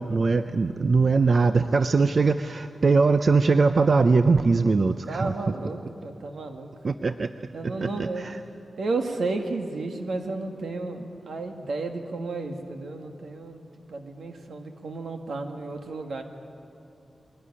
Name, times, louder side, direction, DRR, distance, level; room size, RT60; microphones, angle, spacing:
voice 1, 0.0-5.5 6.8-7.3 7.6-8.4, right 4 dB, 45° right, 10 dB, 0.5 m, -21 dB
voice 2, 5.1-6.7 7.5-8.2 8.8-13.6 13.9-16.2, right 3 dB, 80° right, 4 dB, 2.1 m, -32 dB
22.0 x 17.0 x 9.9 m, 2.8 s
wide cardioid pair, 145°, 0 cm